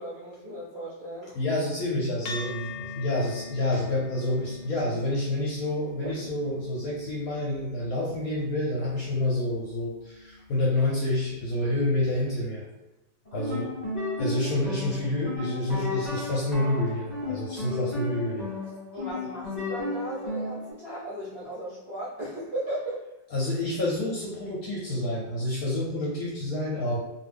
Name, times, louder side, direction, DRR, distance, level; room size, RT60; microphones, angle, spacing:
voice 1, 0.0-1.3 6.0-6.2 13.3-13.4 18.9-23.0, right 1 dB, 45° right, -9 dB, 0.8 m, -36 dB
voice 2, 1.3-12.6 13.3-13.7 14.2-18.5 23.3-27.0, left 1 dB, 65° left, -5 dB, 1.0 m, -28 dB
sound 1, 2.3-10.9, left 3 dB, 85° left, 1.3 m, -43 dB
sound 2, 13.2-20.7, left 2 dB, 40° left, 0.6 m, -33 dB
2.6 x 2.6 x 3.4 m, 1.0 s
omnidirectional pair, 2.0 m